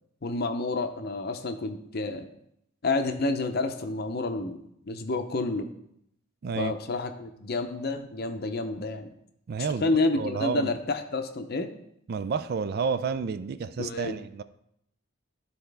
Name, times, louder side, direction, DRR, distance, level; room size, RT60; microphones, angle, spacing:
voice 1, 0.2-2.3 2.8-5.7 6.6-9.1 9.8-11.7 13.8-14.2, left 3 dB, 50° left, 7 dB, 0.7 m, -29 dB
voice 2, 6.4-6.7 9.5-10.7 12.1-14.4, right 5 dB, 50° right, 13 dB, 0.3 m, -30 dB
12.5 x 4.3 x 3.4 m, 0.74 s
head